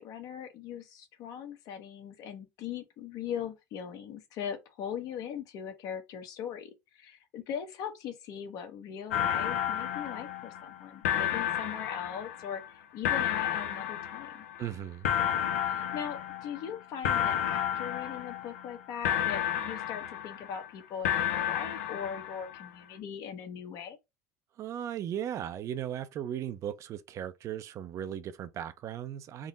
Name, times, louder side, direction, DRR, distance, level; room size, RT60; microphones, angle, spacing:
voice 1, 0.0-14.4 15.6-24.0, left 8 dB, 60° left, 0.9 m, -40 dB
sound 1, 9.1-10.8 11.0-12.7 13.0-14.7 15.0-16.8 17.0-18.8 19.0-20.7 21.0-22.7, left 10 dB, 90° left, 0.5 m, -31 dB
voice 2, 14.6-15.1 24.6-29.5, right 10 dB, 45° right, 0.5 m, -37 dB
3.7 x 2.0 x 3.9 m
supercardioid pair, 90°, 7 cm